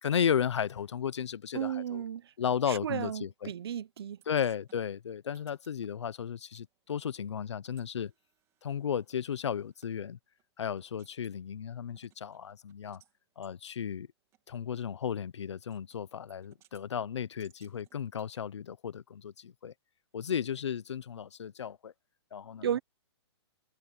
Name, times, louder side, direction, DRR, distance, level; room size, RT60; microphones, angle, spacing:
voice 1, 0.0-2.0 2.4-3.5 4.3-8.1 8.6-10.2 10.6-13.0 13.4-14.1 14.5-19.7 20.1-21.9 22.3-22.8, left 8 dB, 85° left, 1.0 m, -34 dB
voice 2, 1.5-2.3 2.7-4.2 22.6-22.8, right 9 dB, 60° right, 0.9 m, -34 dB
sound 1, 4.2-6.7 6.9-9.9 10.4-10.5 10.8-11.4 11.9-13.1 13.4-13.6 14.3-14.4 15.7-16.0 16.3-16.9 17.4-18.4, right 14 dB, 20° right, 3.3 m, -66 dB
hypercardioid pair, 165°, 14 cm